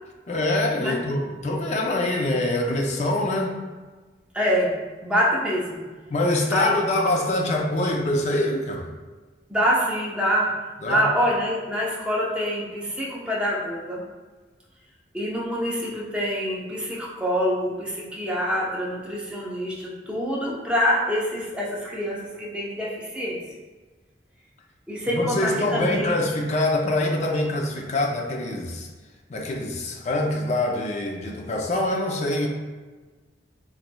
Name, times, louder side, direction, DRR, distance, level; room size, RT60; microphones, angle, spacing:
voice 1, 0.3-3.6 6.1-8.9 10.8-11.1 25.1-28.9 29.3-32.5, left 2 dB, 40° left, 1 dB, 0.5 m, -24 dB
voice 2, 4.3-4.8 5.0-5.8 6.5-6.8 9.5-10.5 10.8-14.0 15.1-23.4 24.9-26.1, equal, 5° right, -5 dB, 0.7 m, -25 dB
3.9 x 3.1 x 2.2 m, 1.3 s
head